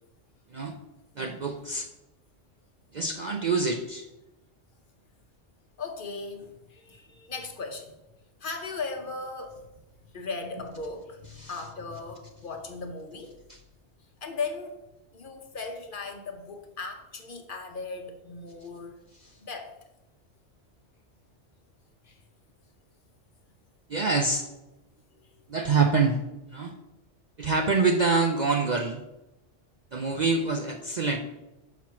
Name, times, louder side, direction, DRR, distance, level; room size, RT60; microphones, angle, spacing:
voice 1, 1.2-1.9 2.9-4.1 11.4-11.5 23.9-24.5 25.5-26.2 26.5-26.7 27.4-29.0 29.9-31.2, right 4 dB, 55° right, 3 dB, 0.5 m, -25 dB
voice 2, 5.8-8.0 8.4-9.7 10.1-13.4 14.2-14.8 15.1-18.9 19.4-19.7 22.0-22.2, left 4 dB, 50° left, 5 dB, 0.8 m, -37 dB
6.0 x 4.5 x 5.7 m, 0.97 s
omnidirectional pair, 1.3 m